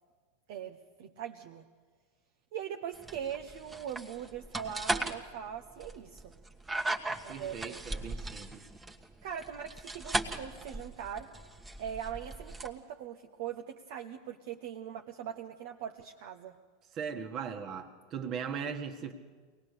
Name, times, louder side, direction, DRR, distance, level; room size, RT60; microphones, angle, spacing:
voice 1, 0.5-1.6 2.5-6.3 7.2-7.8 9.2-11.3 11.8-16.6, right 9 dB, 65° right, 4 dB, 1.0 m, -41 dB
sound 1, 2.9-12.7, right 2 dB, 15° right, 1.4 m, -38 dB
voice 2, 7.0-8.7 16.9-19.1, right 6 dB, 45° right, 7 dB, 1.8 m, -39 dB
23.5 x 18.5 x 6.7 m, 1.5 s
hypercardioid pair, 100°, 0 cm